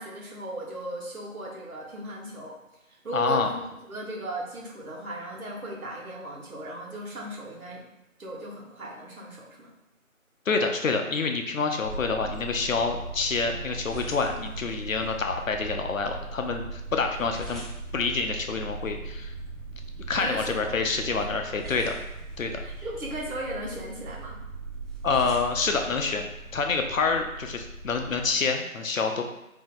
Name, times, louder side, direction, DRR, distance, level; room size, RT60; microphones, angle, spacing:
voice 1, 0.0-2.6 2.9-3.6 3.9-7.9 8.2-9.7 20.1-20.8 21.2-21.3 21.6-21.7 22.6-24.4, right 1 dB, 85° right, -2 dB, 1.1 m, -37 dB
voice 2, 3.1-3.5 10.5-17.6 17.9-19.3 20.1-21.9 22.4-22.5 25.0-26.3 26.5-29.3, left 4 dB, 70° left, 4 dB, 0.6 m, -27 dB
sound 1, 11.8-28.3, right 3 dB, 60° right, 0.5 m, -39 dB
sound 2, 13.5-26.8, right 1 dB, ahead, 0.4 m, -51 dB
2.7 x 2.1 x 3.8 m, 0.92 s
figure-of-eight pair, 175°, 42 cm